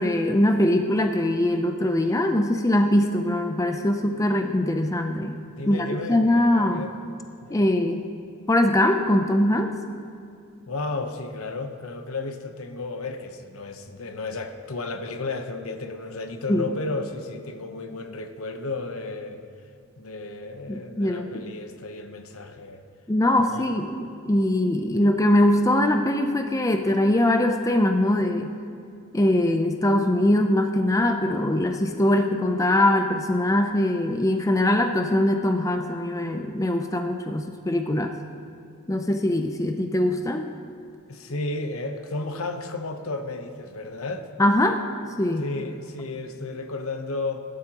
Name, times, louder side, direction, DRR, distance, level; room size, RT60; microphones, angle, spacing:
voice 1, 0.0-5.4 5.7-6.8 7.5-8.0 8.5-9.7 16.5-16.7 20.7-21.3 23.1-28.5 29.1-38.1 38.9-40.5 44.4-44.8 45.2-45.5, left 1 dB, 15° left, 5 dB, 0.5 m, -22 dB
voice 2, 5.5-6.9 7.4-7.6 10.7-19.4 20.0-22.8 23.3-23.8 41.1-44.3 45.4-47.4, left 3 dB, 75° left, 6 dB, 0.9 m, -33 dB
19.0 x 12.0 x 3.0 m, 2.5 s
head